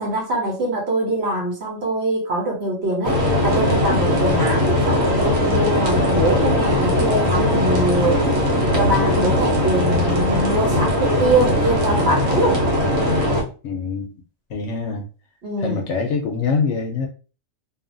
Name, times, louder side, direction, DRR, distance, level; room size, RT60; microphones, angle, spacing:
voice 1, 0.0-8.2 8.6-12.6 15.4-15.8, right 1 dB, 55° right, 1.1 m, -23 dB
sound 1, 3.0-13.4, left 1 dB, 80° right, 1.2 m, -19 dB
voice 2, 13.6-14.1 14.5-15.0 15.6-17.1, left 5 dB, 65° left, 0.9 m, -24 dB
2.7 x 2.4 x 2.5 m
omnidirectional pair, 1.4 m